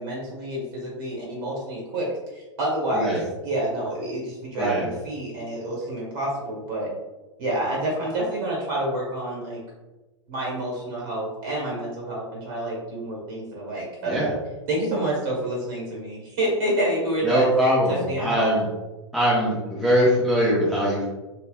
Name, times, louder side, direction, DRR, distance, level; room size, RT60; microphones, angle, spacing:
voice 1, 0.0-6.9 7.4-9.6 10.3-14.3 14.7-17.5 17.9-18.5, right 1 dB, 45° right, -3 dB, 1.3 m, -28 dB
voice 2, 4.6-4.9 14.0-14.3 17.2-18.6 19.1-21.1, equal, ahead, -8 dB, 0.9 m, -22 dB
3.2 x 3.2 x 2.2 m, 1.1 s
figure-of-eight pair, 100°, 16 cm